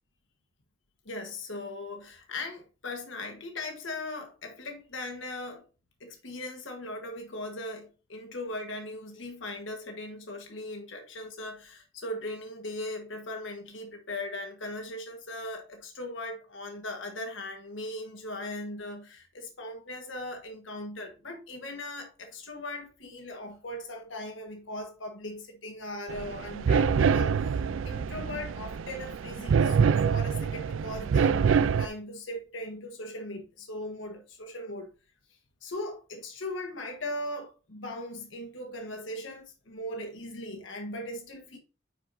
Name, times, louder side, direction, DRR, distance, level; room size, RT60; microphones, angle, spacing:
voice 1, 1.0-5.6 6.0-27.6 27.8-34.9 35.6-41.6, left 1 dB, 80° left, 1.4 m, -39 dB
sound 1, 26.1-31.9, right 6 dB, 90° right, 0.4 m, -25 dB
10.0 x 4.6 x 2.7 m
head